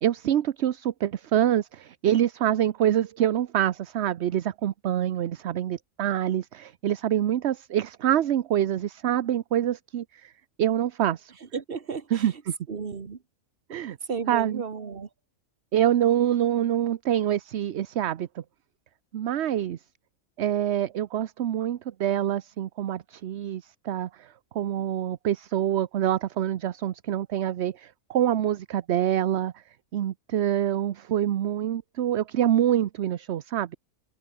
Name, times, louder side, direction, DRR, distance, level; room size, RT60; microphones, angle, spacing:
voice 1, 0.0-10.3 10.6-11.3 12.1-12.6 13.7-14.0 14.3-14.6 15.7-18.4 19.1-19.8 20.4-29.6 29.9-33.8, right 11 dB, 60° right, 0.9 m, -26 dB
voice 2, 11.4-12.4 12.7-13.2 13.7-13.8 14.1-15.1, right 5 dB, 40° right, 1.6 m, -34 dB
omnidirectional pair, 1.5 m